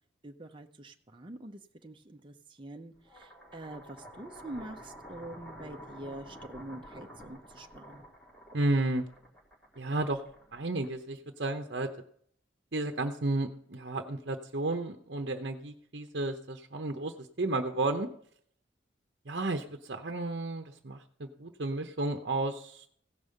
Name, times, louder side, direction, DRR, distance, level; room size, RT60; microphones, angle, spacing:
voice 1, 0.2-8.1, right 1 dB, 25° right, 3 dB, 0.8 m, -45 dB
sound 1, 3.0-11.2, equal, 5° left, 3.3 m, -50 dB
voice 2, 8.5-9.0 9.8-10.2 10.5-11.9 12.7-18.1 19.3-22.9, right 2 dB, 60° right, 4 dB, 0.9 m, -32 dB
16.0 x 5.5 x 6.6 m, 0.62 s
head